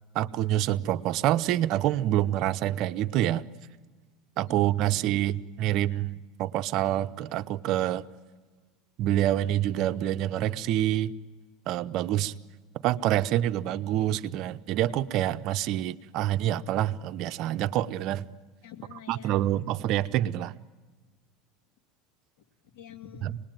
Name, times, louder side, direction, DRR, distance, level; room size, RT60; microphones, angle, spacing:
voice 1, 0.1-3.5 4.4-8.1 9.0-11.1 11.7-12.3 12.8-18.3 19.1-20.5 23.2-23.3, right 13 dB, 50° right, 13 dB, 0.7 m, -27 dB
voice 2, 4.4-5.0 18.6-19.7 22.4-23.4, left 7 dB, 65° left, 6 dB, 2.5 m, -48 dB
26.0 x 20.0 x 9.1 m, 1.3 s
supercardioid pair, 135°, 0 cm